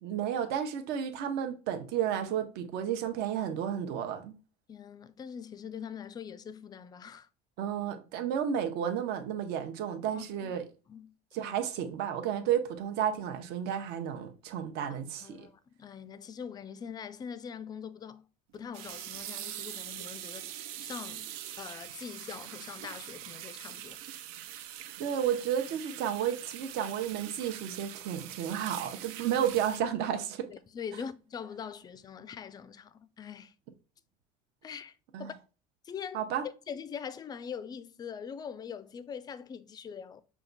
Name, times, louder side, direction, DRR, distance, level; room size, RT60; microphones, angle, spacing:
voice 1, 0.0-4.3 7.6-10.6 11.3-15.5 25.0-30.5 35.1-35.3 36.1-36.4, right 9 dB, 65° right, 0.8 m, -32 dB
voice 2, 4.7-7.3 10.1-10.5 10.9-11.1 11.4-11.6 15.2-18.2 18.5-24.0 30.5-33.5 34.6-35.3 35.8-36.2 36.7-40.2, left 7 dB, 20° left, 0.3 m, -43 dB
sound 1, 18.5-29.8, right 12 dB, 90° right, 0.5 m, -43 dB
5.7 x 2.4 x 3.9 m
cardioid pair, 135°, 18 cm